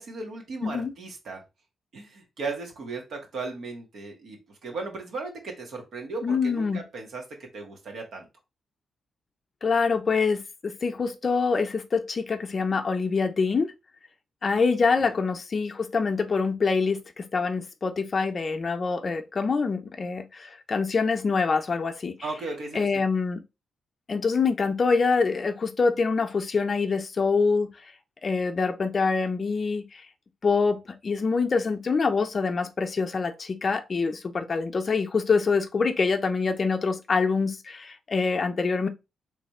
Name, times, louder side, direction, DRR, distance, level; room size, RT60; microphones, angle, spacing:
voice 1, 0.0-1.4 1.9-8.3 15.0-15.1 22.2-23.0, right 3 dB, 70° right, 1.6 m, -36 dB
voice 2, 0.6-0.9 6.2-6.8 9.6-13.7 14.4-22.2 22.7-23.4 24.1-27.7 28.2-30.0 30.4-38.9, left 4 dB, 45° left, 0.6 m, -25 dB
3.4 x 3.2 x 4.2 m
cardioid pair, 65°, 0 cm